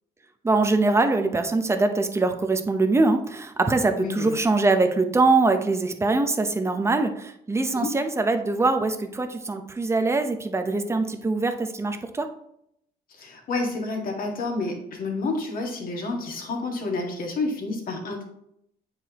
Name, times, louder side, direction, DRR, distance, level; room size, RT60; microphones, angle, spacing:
voice 1, 0.4-12.3, right 3 dB, 15° right, 6 dB, 0.8 m, -23 dB
voice 2, 4.0-4.4 7.7-7.9 13.1-18.2, left 3 dB, 55° left, 1 dB, 1.9 m, -29 dB
8.5 x 4.9 x 3.0 m, 0.74 s
cardioid pair, 110°, 17 cm